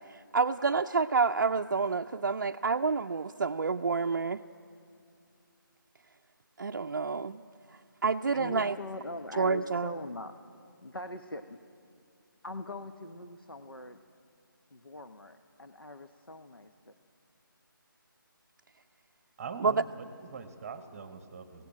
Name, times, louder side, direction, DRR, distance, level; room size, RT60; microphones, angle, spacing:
voice 1, 0.0-4.4 6.6-7.4 8.0-8.8 9.4-9.9 19.6-19.7, right 4 dB, 55° right, 5 dB, 0.4 m, -28 dB
voice 2, 8.3-10.4 10.8-11.6 12.4-14.0 14.7-16.9, left 2 dB, 90° left, 8 dB, 1.0 m, -42 dB
voice 3, 19.4-21.7, right 5 dB, 15° right, 9 dB, 1.0 m, -43 dB
20.0 x 16.0 x 8.9 m, 2.5 s
figure-of-eight pair, 155°, 12 cm